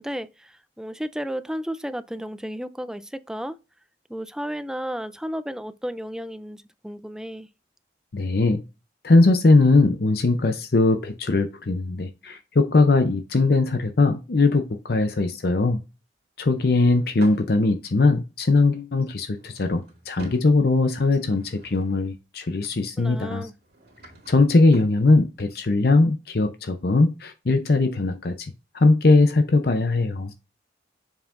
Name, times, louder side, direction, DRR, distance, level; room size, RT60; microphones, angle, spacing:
voice 1, 0.0-3.6 4.1-7.5 23.0-23.5, equal, 5° right, 0.3 m, -33 dB
voice 2, 8.1-8.6 9.0-15.8 16.4-23.5 24.3-28.4 28.7-30.3, left 3 dB, 55° left, 0.6 m, -20 dB
Drawer open or close / Wood, 16.5-17.4 19.2-20.5 21.0-22.2 23.5-25.0, right 1 dB, 55° right, 2.3 m, -46 dB
7.0 x 5.6 x 2.5 m
head